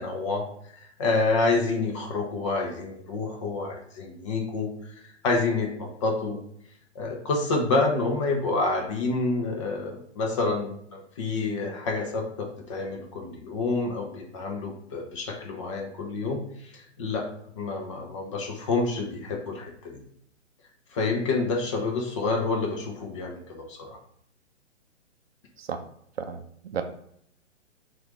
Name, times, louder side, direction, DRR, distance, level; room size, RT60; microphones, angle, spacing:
voice 1, 0.0-6.4 6.9-17.3 17.6-20.0 20.9-24.0, left 3 dB, 25° left, 1 dB, 0.6 m, -28 dB
voice 2, 26.2-26.8, right 7 dB, 55° right, 7 dB, 0.6 m, -33 dB
6.0 x 2.5 x 3.0 m, 0.69 s
figure-of-eight pair, 125°, 37 cm